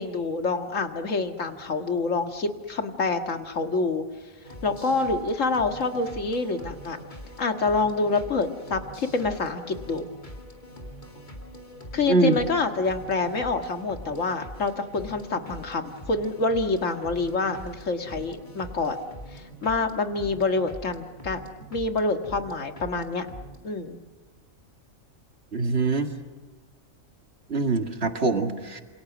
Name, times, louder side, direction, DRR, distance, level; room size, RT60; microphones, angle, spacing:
voice 1, 0.0-4.1 4.6-7.0 7.4-10.1 11.9-19.0 19.3-21.4 21.7-23.3 23.6-24.0, left 3 dB, 65° left, 6 dB, 2.1 m, -27 dB
sound 1, 4.4-23.6, equal, 35° left, 2.6 m, -43 dB
voice 2, 12.1-12.4 25.5-26.1 27.5-28.8, right 3 dB, 50° right, 5 dB, 2.2 m, -23 dB
28.0 x 27.5 x 6.2 m, 1.3 s
omnidirectional pair, 1.4 m